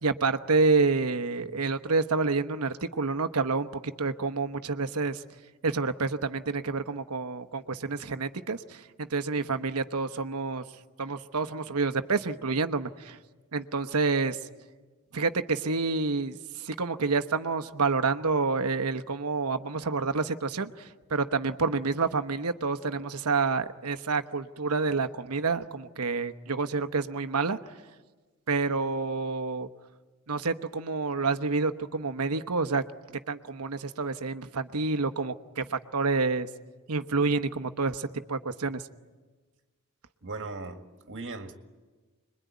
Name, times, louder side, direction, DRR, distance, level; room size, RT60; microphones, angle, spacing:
voice 1, 0.0-5.2 5.6-10.6 11.0-13.2 13.5-14.4 15.1-27.6 28.5-29.7 30.3-32.8 33.3-36.5 36.9-38.8, right 4 dB, 80° right, 1.1 m, -28 dB
voice 2, 40.2-41.6, right 3 dB, 55° right, 1.9 m, -38 dB
26.5 x 22.0 x 9.4 m
head